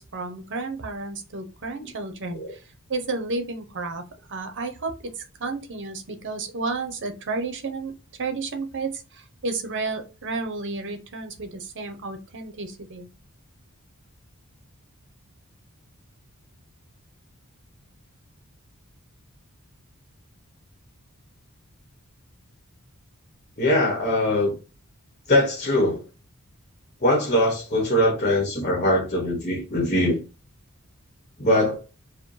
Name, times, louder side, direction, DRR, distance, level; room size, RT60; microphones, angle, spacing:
voice 1, 0.0-2.6 2.9-4.0 4.3-7.9 8.2-13.1, right 3 dB, 55° right, 0.9 m, -32 dB
voice 2, 23.6-24.5 25.3-26.0 27.0-30.2 31.4-31.8, left 1 dB, 35° left, 1.1 m, -21 dB
4.8 x 2.2 x 3.2 m
head